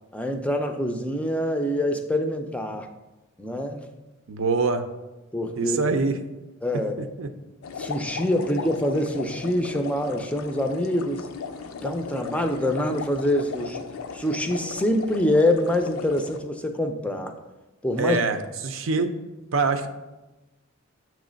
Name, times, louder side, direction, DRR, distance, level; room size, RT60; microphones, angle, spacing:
voice 1, 0.1-2.9 3.4-3.8 5.3-6.0 6.6-6.9 7.8-11.3 11.8-13.8 14.1-17.3 17.8-18.2, left 1 dB, 5° left, 5 dB, 0.4 m, -25 dB
voice 2, 4.3-4.8 5.6-6.2 7.0-7.3 18.0-19.1 19.5-19.9, right 4 dB, 70° right, 8 dB, 0.6 m, -24 dB
sound 1, 7.6-16.4, left 5 dB, 80° left, 0.5 m, -37 dB
7.6 x 3.1 x 5.1 m, 1.1 s
head